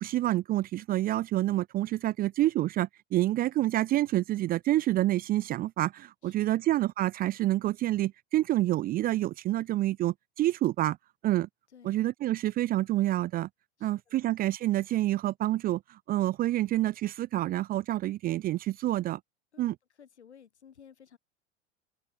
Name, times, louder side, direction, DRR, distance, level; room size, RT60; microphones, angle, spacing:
voice 1, 0.0-11.0 11.2-11.5 11.8-13.5 13.8-19.2 19.6-19.7, right 15 dB, 25° right, 0.5 m, -28 dB
voice 2, 6.2-6.7 11.7-12.0 13.8-14.3 19.5-19.7 20.0-21.2, left 8 dB, 75° left, 5.5 m, -56 dB
figure-of-eight pair, 80°, 34 cm